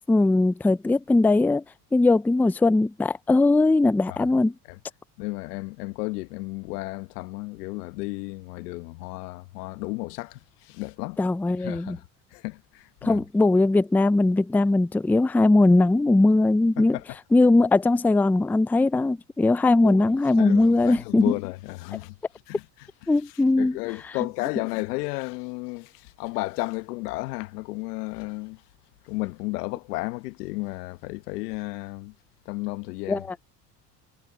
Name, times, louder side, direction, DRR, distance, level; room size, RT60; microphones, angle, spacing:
voice 1, 0.1-1.6 1.9-4.5 11.2-12.0 13.0-17.0 17.3-21.2 23.1-23.8 33.1-33.2, left 2 dB, 5° left, 0.5 m, -20 dB
voice 2, 5.2-11.2 11.6-12.0 12.3-13.2 16.8-17.0 19.8-20.1 20.4-22.2 22.5-22.6 23.0-23.1 23.6-28.6 29.0-32.1 32.4-33.2, left 23 dB, 80° left, 1.2 m, -33 dB
hypercardioid pair, 75°, 46 cm